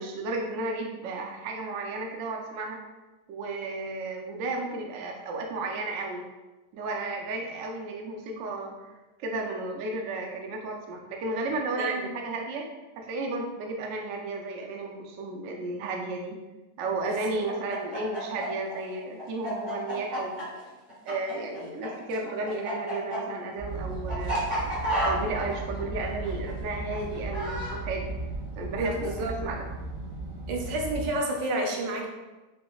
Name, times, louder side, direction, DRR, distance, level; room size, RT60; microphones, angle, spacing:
voice 1, 0.0-2.8 3.3-6.2 6.7-8.9 9.2-12.7 13.0-16.4 16.8-20.4 21.1-24.6 25.0-28.1 28.5-29.6, right 2 dB, 75° right, 1 dB, 0.7 m, -33 dB
voice 2, 11.8-12.1 17.0-17.4 28.7-29.4 30.5-32.1, right 1 dB, 90° right, 1 dB, 1.3 m, -30 dB
Chicken rooster, 17.5-21.9 22.1-27.8, equal, 20° right, 1.1 m, -31 dB
sound 1, 23.6-31.1, right 2 dB, 55° right, 1.2 m, -36 dB
4.9 x 2.1 x 2.3 m, 1.1 s
omnidirectional pair, 1.9 m